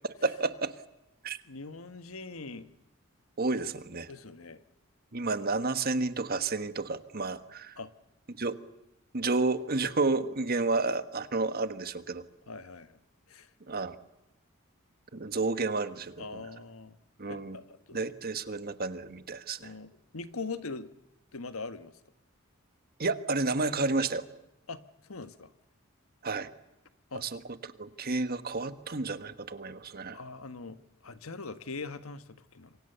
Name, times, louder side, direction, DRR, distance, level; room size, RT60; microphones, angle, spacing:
voice 1, 0.2-0.7 1.2-1.4 3.4-4.1 5.1-7.8 8.3-8.5 9.1-12.2 13.7-14.0 15.1-16.4 17.2-17.6 17.9-19.7 23.0-24.2 26.2-26.5 27.1-30.2, right 3 dB, 45° right, 10 dB, 1.5 m, -31 dB
voice 2, 1.5-2.7 4.1-4.6 7.8-7.9 12.5-13.0 13.3-13.5 16.2-17.0 17.3-18.0 19.6-20.9 21.3-21.9 24.7-24.8 25.0-25.5 27.1-27.2 30.1-30.8 31.0-32.8, left 3 dB, 85° left, 11 dB, 1.4 m, -41 dB
27.5 x 24.0 x 6.9 m, 0.93 s
head